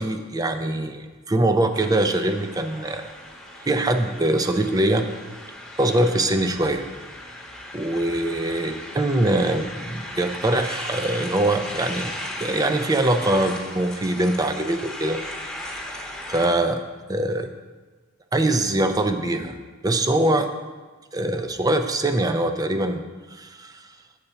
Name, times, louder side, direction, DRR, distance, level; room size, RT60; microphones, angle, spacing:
voice 1, 0.0-3.1 3.7-5.1 5.8-6.8 7.7-15.2 16.3-16.8 17.1-17.5 18.3-19.6 19.8-20.5 21.1-23.0 23.3-23.9, right 1 dB, 15° right, 7 dB, 0.5 m, -23 dB
sound 1, 1.7-16.5, left 1 dB, 5° left, 1.0 m, -37 dB
8.1 x 4.2 x 6.8 m, 1.4 s
head